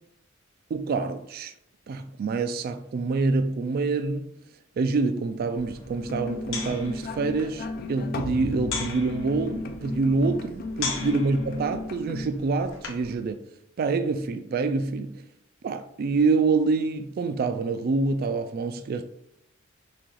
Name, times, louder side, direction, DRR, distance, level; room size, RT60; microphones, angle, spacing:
voice 1, 0.7-1.5 1.9-4.3 4.8-13.4 13.8-15.2 15.6-19.0, right 4 dB, 45° right, 0.3 m, -26 dB
sound 1, 5.6-13.2, left 4 dB, 60° left, 1.0 m, -39 dB
sound 2, 6.1-12.3, left 3 dB, 45° left, 0.4 m, -35 dB
5.9 x 2.4 x 3.1 m
head